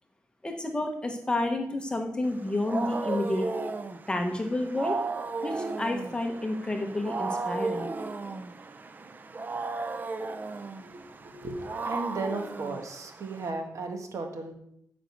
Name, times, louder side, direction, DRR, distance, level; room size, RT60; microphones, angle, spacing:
voice 1, 0.4-3.5 4.1-5.0 5.4-7.9, left 2 dB, 15° left, 4 dB, 1.0 m, -30 dB
Wild animals, 2.3-13.5, right 3 dB, 25° right, 0.6 m, -35 dB
voice 2, 10.8-11.6 11.8-14.5, right 3 dB, 50° right, 3 dB, 1.6 m, -35 dB
9.9 x 5.2 x 8.0 m, 0.74 s
wide cardioid pair, 170°, 7 cm